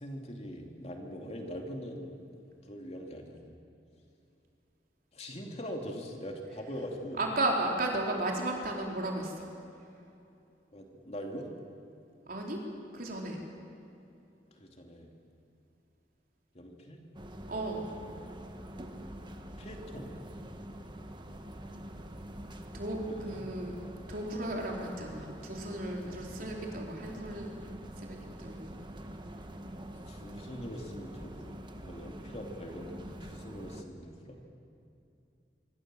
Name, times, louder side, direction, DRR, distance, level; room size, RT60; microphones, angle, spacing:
voice 1, 0.0-2.1 2.6-3.6 5.1-7.2 10.7-11.5 14.5-15.1 16.5-17.0 19.6-20.1 23.1-23.4 30.1-34.5, equal, 35° left, 2 dB, 2.7 m, -42 dB
voice 2, 7.2-9.4 12.3-12.6 12.9-13.4 17.5-17.9 22.7-23.8 24.1-27.5 28.0-28.7, right 2 dB, 50° right, 0 dB, 4.2 m, -34 dB
sound 1, 17.1-33.8, right 1 dB, 25° right, 1.5 m, -45 dB
25.5 x 24.5 x 7.7 m, 2.7 s
head